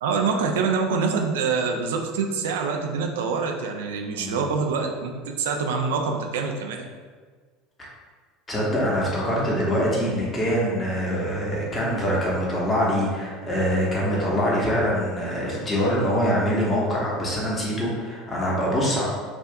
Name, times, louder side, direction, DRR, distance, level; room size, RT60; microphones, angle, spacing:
voice 1, 0.0-6.8, right 5 dB, 70° right, 3 dB, 0.4 m, -25 dB
voice 2, 4.1-4.5 7.8-7.9 8.5-19.1, equal, 25° left, -5 dB, 1.3 m, -24 dB
5.9 x 2.6 x 2.3 m, 1.6 s
figure-of-eight pair, 70°, 0 cm